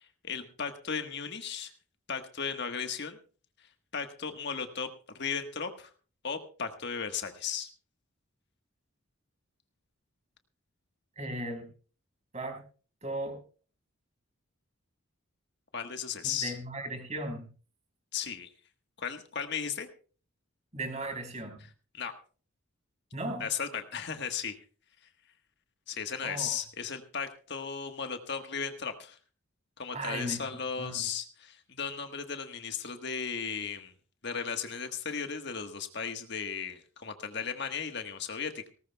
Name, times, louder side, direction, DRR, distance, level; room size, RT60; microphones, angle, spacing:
voice 1, 0.0-1.7 2.1-3.2 3.9-4.9 5.1-5.9 6.2-7.7 15.7-16.6 18.1-18.5 19.0-19.9 21.9-22.1 23.4-24.6 25.9-29.2 29.8-33.9 34.2-38.7, left 6 dB, 50° left, 6 dB, 1.4 m, -36 dB
voice 2, 11.2-11.7 12.3-12.6 13.0-13.4 16.2-17.5 20.7-21.6 23.1-23.4 26.2-26.6 29.9-30.4 30.8-31.1, right 1 dB, 30° right, 5 dB, 4.7 m, -36 dB
19.0 x 18.5 x 2.3 m, 0.39 s
head